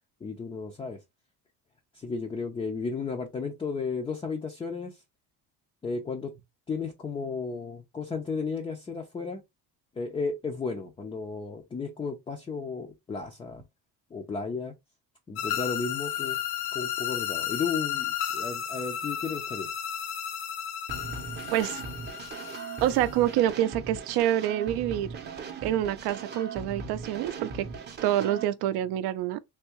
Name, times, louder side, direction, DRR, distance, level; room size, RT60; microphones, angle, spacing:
voice 1, 0.2-1.0 1.9-5.0 5.8-6.3 6.7-9.4 10.0-13.6 14.1-14.7 15.3-16.4 16.7-19.7, left 4 dB, 15° left, 0.3 m, -34 dB
sound 1, 15.4-23.3, left 10 dB, 80° left, 0.8 m, -33 dB
sound 2, 20.9-28.4, right 5 dB, 25° right, 0.6 m, -39 dB
voice 2, 21.5-21.8 22.8-25.1 25.6-27.7 28.0-29.4, right 12 dB, 75° right, 0.5 m, -27 dB
3.5 x 2.7 x 2.9 m
cardioid pair, 155°, 39 cm